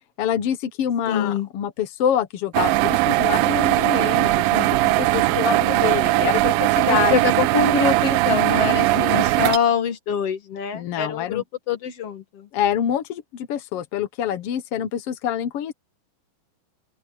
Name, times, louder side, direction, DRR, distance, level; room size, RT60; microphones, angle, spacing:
voice 1, 0.2-7.2 8.9-9.3 10.7-11.4 12.5-15.7, left 9 dB, 70° left, 1.4 m, -26 dB
voice 2, 1.1-1.5 6.8-12.5, left 7 dB, 50° left, 2.4 m, -24 dB
sound 1, 2.5-9.6, right 18 dB, 85° right, 2.4 m, -19 dB
open air
omnidirectional pair, 4.1 m